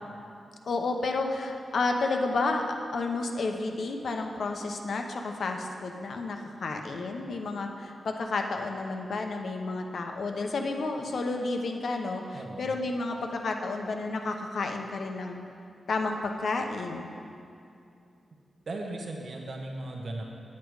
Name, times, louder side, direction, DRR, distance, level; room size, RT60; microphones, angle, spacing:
voice 1, 0.6-2.6 2.9-15.4 15.9-17.1, left 3 dB, 65° left, 4 dB, 0.8 m, -31 dB
voice 2, 12.3-12.7 18.7-20.2, right 2 dB, 50° right, 1 dB, 0.9 m, -37 dB
9.2 x 8.3 x 4.8 m, 2.6 s
wide cardioid pair, 130°, 0 cm